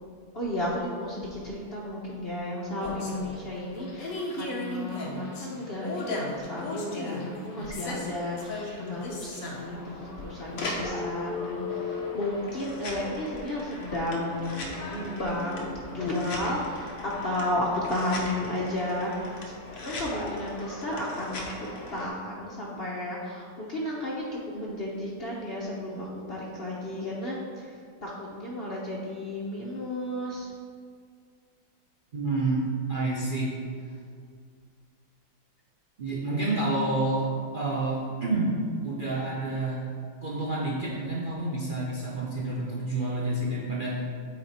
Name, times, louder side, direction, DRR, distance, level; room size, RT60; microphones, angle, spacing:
voice 1, 0.3-19.1 19.4-19.6 19.8-30.5, left 1 dB, 70° left, -4 dB, 0.5 m, -33 dB
sound 1, 2.8-22.1, left 2 dB, 55° left, 1.1 m, -37 dB
voice 2, 32.1-33.5 36.0-39.9 40.2-44.0, right 2 dB, 70° right, -5 dB, 0.4 m, -29 dB
8.7 x 3.5 x 4.2 m, 2.1 s
omnidirectional pair, 2.1 m